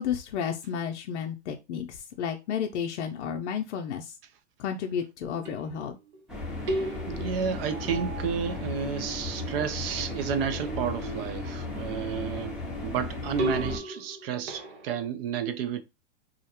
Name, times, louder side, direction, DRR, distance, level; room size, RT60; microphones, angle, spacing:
voice 1, 0.0-4.2 4.6-6.0, left 8 dB, 75° left, 0.5 m, -32 dB
sound 1, 5.3-6.2 6.7-8.7 9.0-12.0 13.4-15.0, right 1 dB, 75° right, 0.9 m, -37 dB
sound 2, 6.3-13.8, left 3 dB, ahead, 0.6 m, -35 dB
voice 2, 7.1-15.8, right 7 dB, 55° right, 0.5 m, -31 dB
2.4 x 2.1 x 2.8 m
hypercardioid pair, 140°, 35 cm